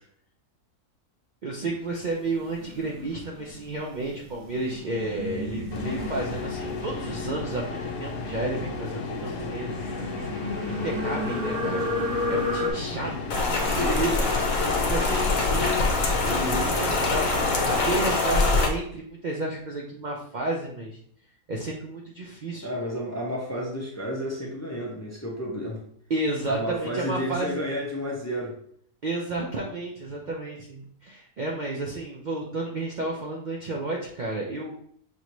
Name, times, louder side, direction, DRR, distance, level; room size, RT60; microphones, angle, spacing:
voice 1, 1.4-9.9 10.2-13.1 13.7-14.1 14.7-21.0 21.5-22.7 26.1-27.6 29.0-34.8, right 2 dB, 75° right, -2 dB, 0.4 m, -32 dB
sound 1, 2.2-12.7, left 2 dB, 45° right, 0.9 m, -33 dB
sound 2, 5.7-18.1, left 4 dB, 90° left, 1.3 m, -34 dB
Rain, 13.3-18.7, left 3 dB, 60° left, 1.0 m, -24 dB
voice 2, 13.7-14.1 22.6-25.8 26.5-28.5, equal, 15° left, -3 dB, 0.5 m, -31 dB
6.1 x 2.7 x 3.0 m, 0.63 s
omnidirectional pair, 1.6 m